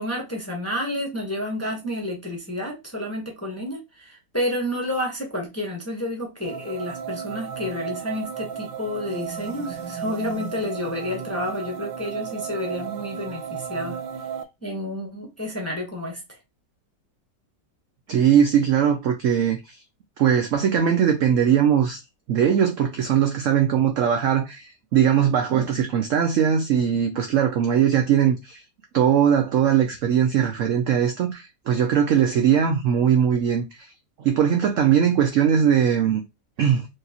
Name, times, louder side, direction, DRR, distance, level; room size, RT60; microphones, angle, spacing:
voice 1, 0.0-14.0 14.6-16.4, left 1 dB, 10° left, 0.8 m, -30 dB
sound 1, 6.4-14.4, right 7 dB, 90° right, 1.3 m, -34 dB
voice 2, 18.1-19.8 20.2-22.0 22.3-28.6 28.9-33.9 34.2-36.2 36.6-36.9, right 8 dB, 75° right, 0.7 m, -20 dB
4.6 x 2.8 x 2.8 m
omnidirectional pair, 1.9 m